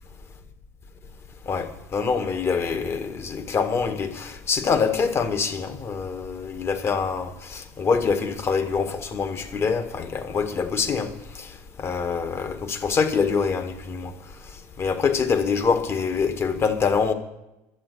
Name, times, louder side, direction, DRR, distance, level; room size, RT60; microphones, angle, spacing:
voice 1, 1.5-11.1 11.4-11.5 11.8-14.1 14.8-17.1, left 5 dB, 35° left, 1.8 m, -25 dB
12.0 x 8.2 x 10.0 m
supercardioid pair, 90°, 7 cm